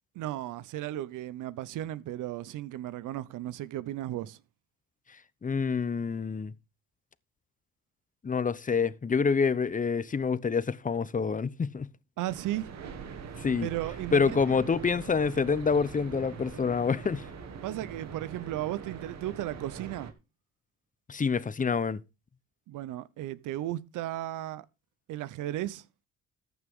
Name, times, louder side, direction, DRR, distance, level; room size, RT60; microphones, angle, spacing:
voice 1, 0.1-4.4 12.2-12.7 13.6-14.6 17.6-20.1 22.7-24.7 25.1-25.8, right 14 dB, 85° right, 0.9 m, -35 dB
voice 2, 5.4-6.5 8.2-11.9 13.4-13.7 14.1-17.3 21.1-22.0, left 5 dB, 25° left, 0.9 m, -27 dB
sound 1, 12.3-20.1, right 6 dB, 60° right, 2.1 m, -43 dB
14.0 x 9.5 x 3.7 m
cardioid pair, 90°, 30 cm